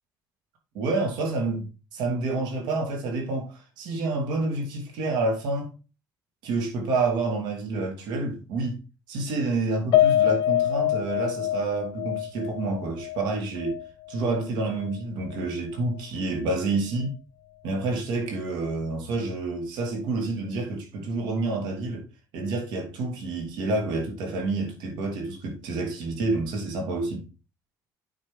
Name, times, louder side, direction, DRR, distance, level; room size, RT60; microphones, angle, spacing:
voice 1, 0.7-5.7 6.4-8.8 9.1-13.8 14.1-17.1 17.6-22.1 22.3-27.3, right 3 dB, 75° right, 2.8 m, -28 dB
Piano, 9.9-14.4 14.8-14.9 15.3-15.4, left 12 dB, 65° left, 1.0 m, -25 dB
8.8 x 5.6 x 3.9 m
cardioid pair, 170°, 8 cm